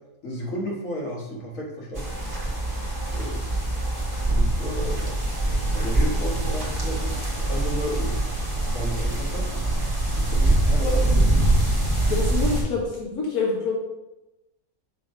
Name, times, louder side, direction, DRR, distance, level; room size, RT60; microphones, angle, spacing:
voice 1, 0.2-2.1 3.1-3.4 4.3-5.2 5.7-8.2 8.6-9.7 10.2-11.1, equal, 65° left, -4 dB, 1.8 m, -33 dB
sound 1, 1.9-12.6, right 1 dB, 15° right, 1.2 m, -23 dB
voice 2, 10.8-11.2 12.1-13.8, left 3 dB, 85° left, -2 dB, 1.6 m, -26 dB
6.1 x 3.1 x 5.0 m, 0.97 s
omnidirectional pair, 1.5 m